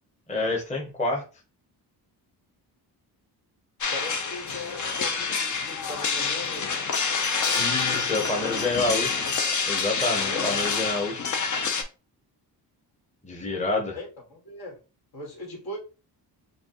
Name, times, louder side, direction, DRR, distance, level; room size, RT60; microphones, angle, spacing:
voice 1, 0.3-1.2 7.5-9.2 9.7-11.3 13.2-14.0, left 2 dB, 15° left, 0.9 m, -28 dB
sound 1, 3.8-11.8, left 5 dB, 45° left, 0.8 m, -27 dB
voice 2, 3.9-6.8 7.7-8.8 10.2-10.6 13.9-14.8 15.1-15.8, left 2 dB, 65° left, 2.0 m, -39 dB
5.0 x 2.3 x 3.0 m
cardioid pair, 105°, 41 cm